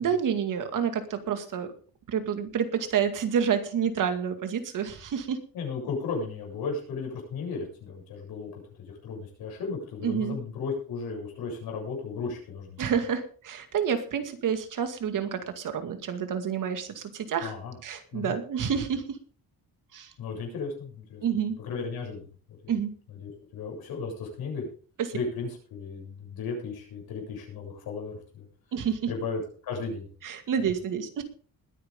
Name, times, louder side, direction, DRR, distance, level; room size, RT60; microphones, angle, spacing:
voice 1, 0.0-1.7 2.1-5.4 10.0-10.4 12.8-17.5 17.8-19.2 19.9-20.1 21.2-21.6 22.7-22.9 25.0-25.1 28.7-29.1 30.2-31.2, right 7 dB, 60° right, 8 dB, 2.2 m, -29 dB
voice 2, 5.5-8.6 8.9-12.8 17.4-17.7 18.1-18.3 20.2-21.2 21.6-22.2 22.5-22.7 23.1-24.7 25.1-28.5 29.1-30.1, left 4 dB, 90° left, 0 dB, 7.6 m, -35 dB
21.0 x 9.6 x 3.7 m, 0.42 s
cardioid pair, 160°, 36 cm